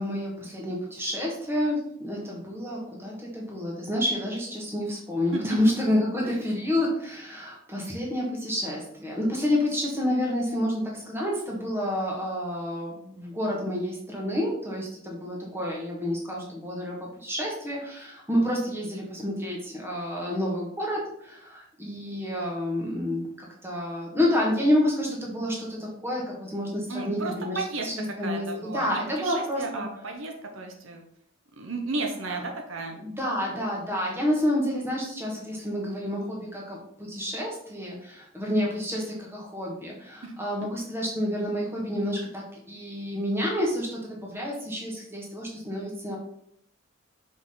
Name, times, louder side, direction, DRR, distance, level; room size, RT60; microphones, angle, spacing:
voice 1, 0.0-29.8 32.9-46.2, left 1 dB, 10° right, -2 dB, 1.6 m, -29 dB
voice 2, 26.9-31.1 31.6-33.0 40.2-40.3, right 3 dB, 65° right, 2 dB, 0.8 m, -34 dB
5.9 x 4.8 x 3.9 m, 0.71 s
head